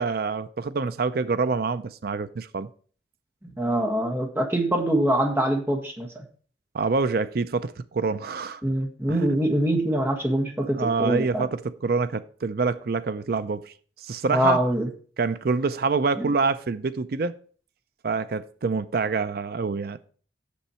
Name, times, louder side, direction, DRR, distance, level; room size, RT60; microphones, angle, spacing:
voice 1, 0.0-2.7 6.7-8.6 9.1-9.3 10.7-14.6 15.2-17.3 18.0-20.0, right 4 dB, 50° right, 0.4 m, -26 dB
voice 2, 3.6-6.2 8.6-11.4 14.3-14.9 16.2-16.3, right 1 dB, 10° right, 1.4 m, -24 dB
8.4 x 7.1 x 4.3 m
head